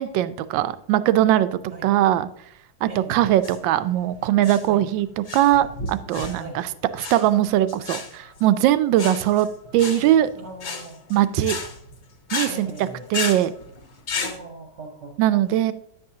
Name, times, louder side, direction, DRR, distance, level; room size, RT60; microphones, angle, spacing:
voice 1, 0.0-2.3 2.8-9.5 9.7-10.3 11.1-11.6 12.3-13.5 15.2-15.7, right 12 dB, 75° right, 13 dB, 1.2 m, -21 dB
voice 2, 2.9-3.3 4.7-4.9 6.4-6.6 10.3-11.1 12.5-13.1 14.1-15.2, right 2 dB, 45° right, 2 dB, 1.1 m, -39 dB
sound 1, 3.3-14.4, left 4 dB, 45° left, 1.0 m, -34 dB
10.5 x 7.9 x 2.8 m, 0.72 s
omnidirectional pair, 2.2 m